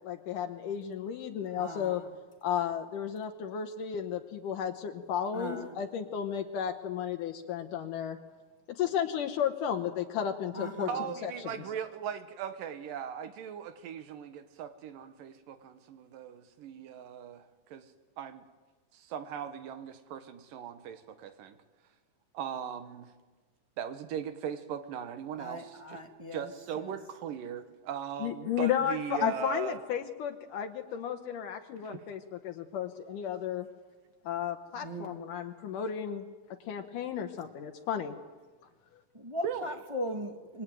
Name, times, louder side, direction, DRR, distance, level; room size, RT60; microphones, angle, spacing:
voice 1, 0.0-2.0 2.4-8.2 8.7-10.9 11.2-11.6 28.2-33.7 34.2-36.2 36.7-38.2, left 9 dB, 75° left, 4 dB, 2.6 m, -33 dB
voice 2, 1.6-2.1 5.3-5.8 10.5-11.0 25.4-26.5 26.8-26.9 29.2-29.3 34.8-35.2 39.1-40.6, equal, 15° right, 3 dB, 1.3 m, -38 dB
voice 3, 10.9-17.9 18.2-18.5 18.9-21.6 22.3-23.1 23.8-26.0 26.3-29.8 31.8-32.0 39.4-39.8, right 8 dB, 85° right, 10 dB, 3.0 m, -39 dB
26.5 x 22.0 x 9.2 m, 1.4 s
omnidirectional pair, 3.8 m